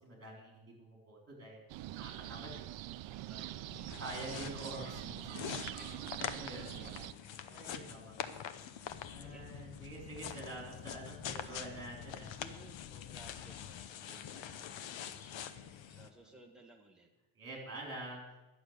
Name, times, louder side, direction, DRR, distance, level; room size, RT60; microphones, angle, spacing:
voice 1, 0.0-1.6 1.9-2.6 3.2-3.4 4.0-5.2 6.2-6.7 7.5-8.3 8.8-12.4 14.0-14.6 15.9-16.0 17.4-18.3, right 2 dB, 30° right, 0 dB, 3.8 m, -47 dB
sound 1, 1.7-7.1, right 15 dB, 75° right, 0.5 m, -44 dB
voice 2, 3.1-4.1 5.7-8.1 9.2-9.5 11.3-11.6 12.4-17.1, right 1 dB, ahead, 0 dB, 1.3 m, -60 dB
sound 2, 3.7-16.1, left 9 dB, 70° left, 0.9 m, -45 dB
sound 3, 8.9-13.9, left 11 dB, 45° left, 0.5 m, -52 dB
11.0 x 6.9 x 8.1 m, 1.1 s
cardioid pair, 155°, 47 cm